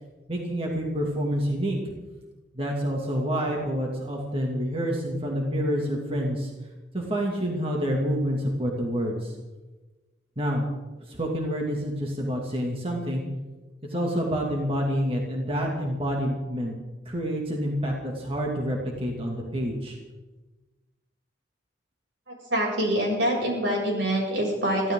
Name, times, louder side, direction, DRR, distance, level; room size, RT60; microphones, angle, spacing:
voice 1, 0.3-1.8 2.5-6.5 6.9-9.4 10.4-10.7 11.0-13.3 13.9-16.7 17.1-20.0, equal, 30° right, -1 dB, 2.5 m, -28 dB
voice 2, 22.5-24.9, right 1 dB, 85° right, -2 dB, 7.3 m, -25 dB
23.5 x 15.5 x 3.9 m, 1.2 s
head